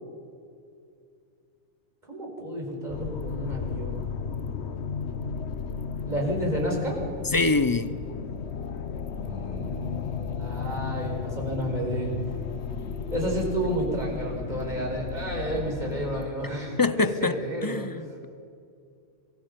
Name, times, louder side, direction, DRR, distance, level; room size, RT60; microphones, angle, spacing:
voice 1, 2.1-4.1 6.0-7.0 9.2-12.2 13.1-17.9, equal, 40° right, -1 dB, 5.3 m, -31 dB
Space Hulk Engine Room, 2.9-16.3, left 5 dB, 70° left, 1.2 m, -34 dB
voice 2, 7.3-7.9 16.8-18.3, left 3 dB, 25° left, 13 dB, 0.5 m, -25 dB
25.5 x 22.5 x 5.3 m, 2.3 s
omnidirectional pair, 1.2 m